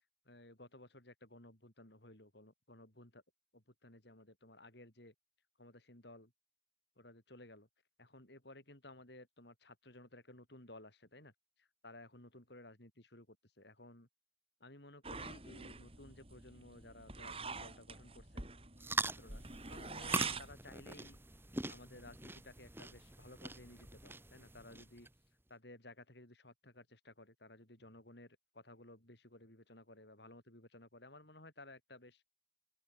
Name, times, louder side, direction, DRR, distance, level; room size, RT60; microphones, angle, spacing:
voice 1, 0.2-3.2 3.5-5.1 5.6-6.3 7.0-7.7 8.0-11.3 11.6-14.1 14.6-18.4 19.0-21.2 21.7-25.1 25.5-32.2, left 1 dB, 60° left, 5.1 m, -57 dB
sound 1, 15.0-20.5, right 5 dB, 30° right, 6.5 m, -46 dB
sound 2, 18.8-25.1, right 2 dB, 10° right, 2.0 m, -43 dB
open air
head